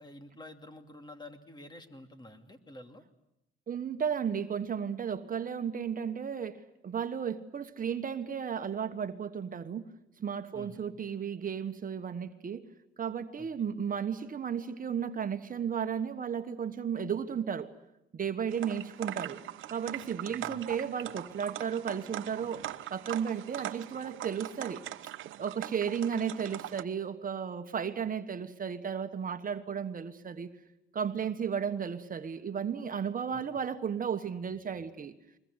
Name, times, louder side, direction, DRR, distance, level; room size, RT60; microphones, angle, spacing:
voice 1, 0.0-3.0 10.5-10.9 13.4-13.5 20.4-20.7 33.3-33.4, left 1 dB, 20° left, 7 dB, 2.6 m, -49 dB
voice 2, 3.7-9.9 10.2-12.7 13.0-17.7 18.1-19.4 19.7-24.8 25.4-30.5 30.9-35.1, right 7 dB, 45° right, 8 dB, 1.4 m, -34 dB
sound 1, 18.5-26.8, right 13 dB, 80° right, 1.0 m, -41 dB
22.5 x 21.0 x 9.8 m, 0.85 s
cardioid pair, 90°, 20 cm